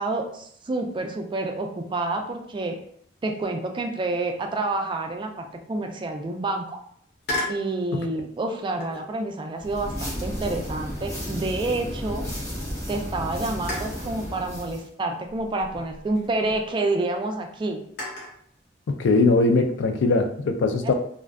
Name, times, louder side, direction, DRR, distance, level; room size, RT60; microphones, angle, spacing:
voice 1, 0.0-2.8 3.2-6.8 7.5-12.3 12.9-17.8 20.8-20.9, right 2 dB, 25° right, 4 dB, 0.3 m, -28 dB
sound 1, 7.2-7.7 8.8-9.2 9.9-12.2 12.6-12.7 13.7-14.1 15.3-16.6 18.0-18.4, left 1 dB, 60° left, 0.7 m, -35 dB
sound 2, 9.6-14.9, equal, 15° left, 0.7 m, -33 dB
voice 2, 18.9-20.9, left 3 dB, 85° left, 6 dB, 0.3 m, -21 dB
2.5 x 2.2 x 2.3 m, 0.66 s
head